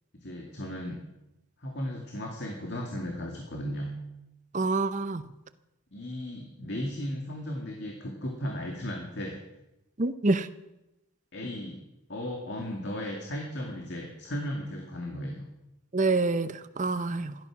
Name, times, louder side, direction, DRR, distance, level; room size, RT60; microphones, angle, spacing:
voice 1, 0.2-1.0 1.6-3.9 5.9-9.4 11.3-11.8 12.1-15.4, equal, 50° left, 0 dB, 2.3 m, -35 dB
voice 2, 4.5-5.2 10.0-10.5 15.9-17.3, right 3 dB, 35° right, 12 dB, 0.7 m, -27 dB
17.0 x 12.5 x 6.0 m, 0.92 s
head